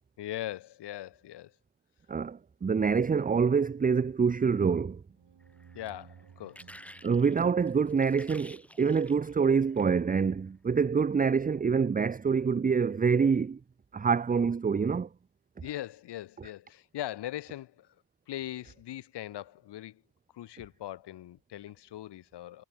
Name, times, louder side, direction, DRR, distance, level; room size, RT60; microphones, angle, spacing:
voice 1, 0.2-1.5 5.7-6.7 15.6-17.9 18.3-20.0 20.3-22.6, left 13 dB, 85° left, 0.5 m, -40 dB
voice 2, 2.1-5.0 7.0-13.6 13.9-15.1, right 5 dB, 25° right, 0.4 m, -26 dB
sound 1, 5.1-9.6, right 7 dB, 85° right, 3.3 m, -58 dB
sound 2, 5.4-10.1 10.8-11.0, equal, 5° left, 2.0 m, -52 dB
wide cardioid pair, 105°, 40 cm